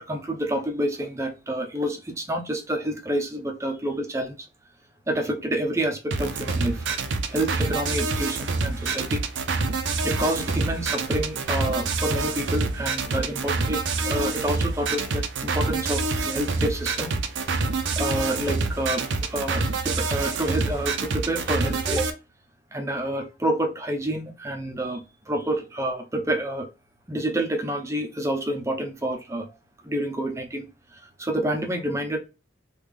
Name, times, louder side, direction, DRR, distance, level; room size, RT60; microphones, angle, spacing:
voice 1, 0.0-4.5 5.1-6.9 7.3-9.2 10.0-17.1 17.5-17.6 18.0-22.1 22.7-26.7 27.1-29.5 29.8-30.7 30.9-32.2, right 1 dB, 15° right, 0.5 m, -28 dB
sound 1, 6.1-22.1, right 3 dB, 70° right, 0.5 m, -27 dB
3.3 x 2.4 x 3.4 m
head